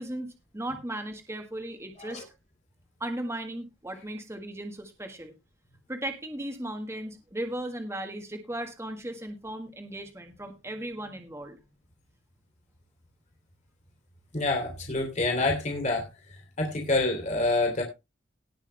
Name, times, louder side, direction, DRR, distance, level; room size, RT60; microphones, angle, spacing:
voice 1, 0.0-2.2 3.0-5.3 5.9-11.6, right 1 dB, 15° right, 5 dB, 1.7 m, -36 dB
voice 2, 14.3-16.1 16.6-17.8, left 2 dB, 35° left, 2 dB, 3.1 m, -27 dB
18.5 x 6.3 x 3.4 m, 0.25 s
head